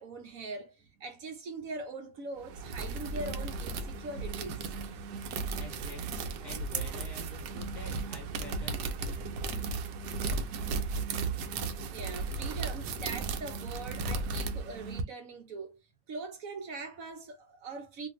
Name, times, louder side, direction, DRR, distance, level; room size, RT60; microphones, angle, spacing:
voice 1, 0.0-4.7 8.1-8.3 9.2-9.3 11.9-15.8 16.1-18.1, right 3 dB, 60° right, 1.0 m, -42 dB
sound 1, 2.4-15.0, right 4 dB, 80° right, 1.2 m, -35 dB
voice 2, 5.6-9.7, left 2 dB, ahead, 1.2 m, -49 dB
2.9 x 2.5 x 3.0 m
omnidirectional pair, 1.9 m